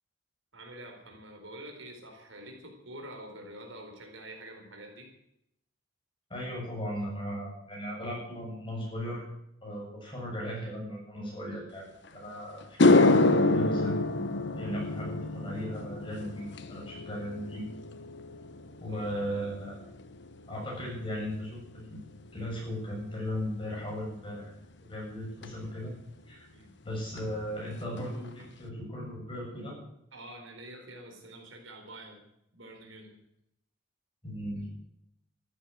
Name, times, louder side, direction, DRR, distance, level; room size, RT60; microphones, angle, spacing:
voice 1, 0.5-5.1 18.9-19.5 26.5-26.7 30.1-32.2 32.5-33.1, right 1 dB, 70° right, 2 dB, 4.4 m, -47 dB
voice 2, 6.3-9.2 9.6-12.6 12.9-14.0 14.6-17.7 18.8-19.8 20.5-24.5 24.8-25.9 26.3-26.5 26.8-29.8 34.2-34.6, equal, 25° left, -3 dB, 7.6 m, -37 dB
sound 1, 12.1-12.2 12.6-21.1 21.4-21.8 25.4-25.5 27.2-27.3 27.6-27.7 28.0-28.5, left 2 dB, 60° left, 1.1 m, -27 dB
14.0 x 9.8 x 9.4 m, 0.79 s
head